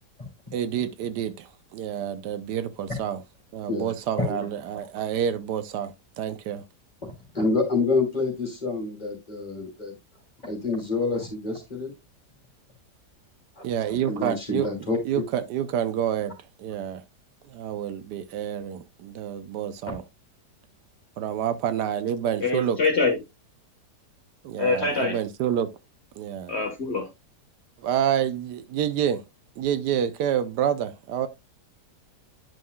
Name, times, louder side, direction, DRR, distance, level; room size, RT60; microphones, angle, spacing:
voice 1, 0.5-3.2 3.5-6.6 13.6-14.7 15.1-16.3 16.6-17.0 17.5-20.0 21.2-22.8 24.4-25.7 26.2-26.5 27.8-29.2 29.6-31.3, right 9 dB, 80° right, 1.2 m, -28 dB
voice 2, 3.7-4.5 7.0-9.9 10.4-11.9 13.5-15.0 19.9-20.0, left 3 dB, 25° left, 3.0 m, -28 dB
voice 3, 22.4-23.2 24.6-25.2 26.5-27.1, left 3 dB, 40° left, 1.6 m, -24 dB
10.5 x 5.6 x 2.2 m
omnidirectional pair, 1.8 m